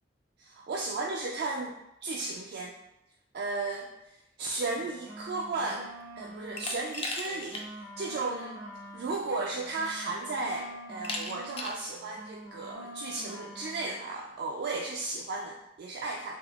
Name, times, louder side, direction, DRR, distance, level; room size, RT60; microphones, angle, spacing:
voice 1, 0.4-2.7 3.3-5.9 6.2-7.6 8.0-8.6 8.9-16.4, right 3 dB, 60° right, -1 dB, 0.3 m, -35 dB
sound 1, 4.7-6.9 7.2-11.6 11.9-13.9, equal, 90° right, 1.1 m, -45 dB
Glass, 6.6-7.7 8.1-8.2 9.3-9.4 9.9-10.3 11.0-11.9, left 2 dB, 30° left, 0.4 m, -37 dB
3.5 x 2.6 x 2.3 m, 0.90 s
head